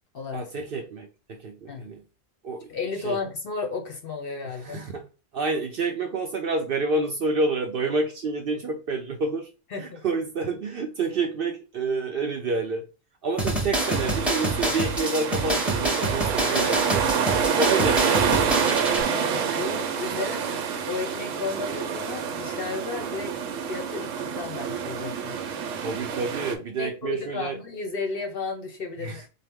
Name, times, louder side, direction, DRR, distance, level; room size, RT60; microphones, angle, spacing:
voice 1, 0.3-2.0 2.4-2.7 3.0-3.2 4.4-5.1 5.3-12.8 13.2-17.3 17.6-18.6 25.8-27.6 29.0-29.3, right 3 dB, 60° right, 0.6 m, -29 dB
voice 2, 2.7-4.8 9.7-10.0 19.1-25.4 26.8-29.3, left 4 dB, 55° left, 0.7 m, -33 dB
sound 1, 13.4-19.0, right 1 dB, ahead, 0.7 m, -27 dB
sound 2, 13.8-26.5, right 7 dB, 75° right, 1.0 m, -27 dB
4.0 x 2.1 x 3.4 m
omnidirectional pair, 1.3 m